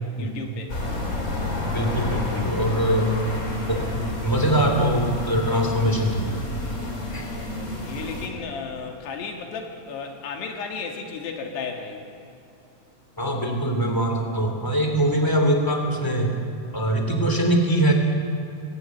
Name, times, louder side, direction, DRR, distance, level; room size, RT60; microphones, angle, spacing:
voice 1, 0.2-0.8 7.0-12.1, left 5 dB, 80° left, 2 dB, 4.0 m, -34 dB
sound 1, 0.7-8.3, left 1 dB, 20° left, 3.5 m, -30 dB
voice 2, 1.7-3.1 3.6-6.3 7.1-7.3 13.2-16.3 16.7-17.9, right 1 dB, 5° left, 2 dB, 2.4 m, -22 dB
23.0 x 16.0 x 9.2 m, 2.6 s
omnidirectional pair, 4.8 m